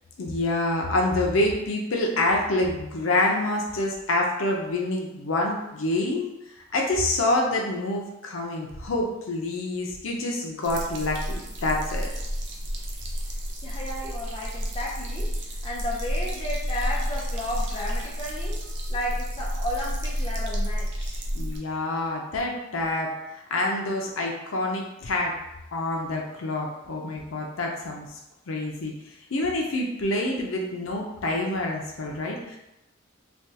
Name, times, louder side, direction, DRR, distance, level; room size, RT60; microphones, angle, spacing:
voice 1, 0.2-6.3 6.7-12.1 21.3-25.4 25.7-28.1 28.5-28.9 29.3-32.6, left 2 dB, 80° left, 0 dB, 0.6 m, -27 dB
sound 1, 10.6-21.6, equal, 60° right, 0.5 m, -30 dB
voice 2, 13.6-18.6 18.9-21.2, left 1 dB, 25° left, -5 dB, 0.6 m, -33 dB
3.3 x 2.3 x 2.8 m, 0.90 s
head